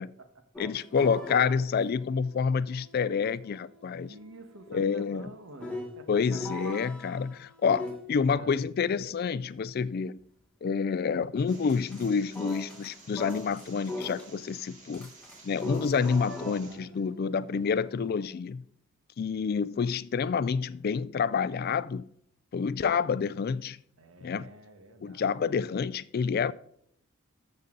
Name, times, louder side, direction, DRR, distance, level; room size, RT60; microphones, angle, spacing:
voice 1, 0.6-4.1 4.7-5.3 6.1-10.2 10.6-15.1 15.4-18.6 19.2-22.1 22.5-23.8 24.2-24.5 25.0-26.5, left 6 dB, 45° left, 0.3 m, -28 dB
sound 1, 0.6-8.1 11.5-12.1 12.3-14.6 14.9-18.3, left 1 dB, 5° left, 1.5 m, -42 dB
voice 2, 4.1-6.2 8.3-8.6 16.4-17.0 24.0-25.3, right 2 dB, 70° right, 1.5 m, -48 dB
sound 2, 11.5-16.7, right 3 dB, 35° right, 2.8 m, -53 dB
13.5 x 6.8 x 3.9 m
head